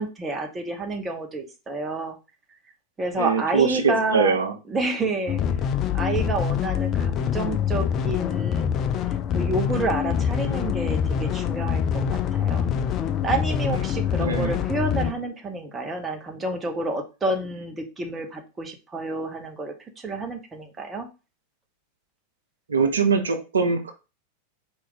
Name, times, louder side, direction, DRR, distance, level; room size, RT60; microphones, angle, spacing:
voice 1, 0.0-2.2 3.0-4.4 4.7-5.4 5.9-8.7 9.3-12.7 13.2-21.1, right 2 dB, 15° right, 3 dB, 0.8 m, -29 dB
voice 2, 3.1-4.5 14.2-14.5 22.7-23.9, right 5 dB, 70° right, 5 dB, 0.6 m, -22 dB
sound 1, 5.3-15.1, left 8 dB, 30° left, 0.4 m, -25 dB
4.3 x 2.5 x 3.9 m, 0.30 s
figure-of-eight pair, 90°, 0 cm